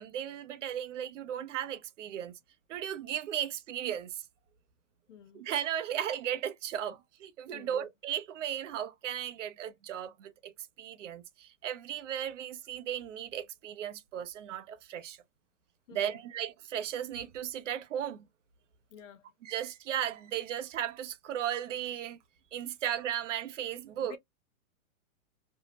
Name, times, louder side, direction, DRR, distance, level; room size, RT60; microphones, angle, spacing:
voice 1, 0.0-2.3 2.7-4.2 5.3-10.5 10.8-15.2 15.9-18.3 19.4-22.2 22.5-24.1, right 10 dB, 60° right, 0.5 m, -36 dB
voice 2, 5.1-5.4 7.5-7.9 15.9-16.3 18.9-19.2 24.0-24.2, left 7 dB, 60° left, 0.6 m, -51 dB
2.6 x 2.0 x 2.8 m
hypercardioid pair, 155°, 42 cm